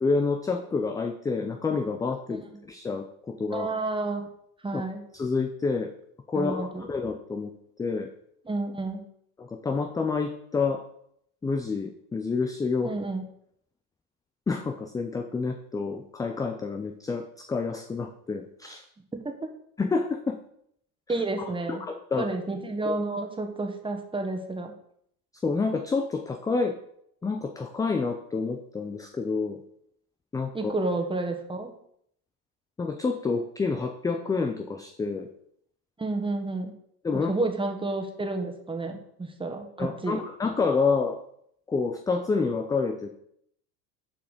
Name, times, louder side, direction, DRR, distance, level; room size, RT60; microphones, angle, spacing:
voice 1, 0.0-3.7 4.7-4.8 5.1-5.9 6.3-7.5 7.8-8.1 9.4-10.8 11.4-12.9 14.5-18.8 19.8-20.4 21.1-21.2 21.7-22.3 22.8-22.9 25.4-26.8 27.2-29.6 30.3-30.7 32.8-35.3 37.0-37.4 39.8-41.2 41.7-43.2, left 4 dB, 10° left, 5 dB, 0.4 m, -28 dB
voice 2, 3.5-4.3 4.6-5.0 6.3-6.9 8.5-9.1 12.8-13.2 19.2-19.5 21.1-21.8 22.2-24.7 30.5-31.7 36.0-36.8 37.1-40.2, right 2 dB, 10° right, 5 dB, 1.4 m, -30 dB
7.2 x 4.7 x 6.6 m, 0.70 s
hypercardioid pair, 95°, 46 cm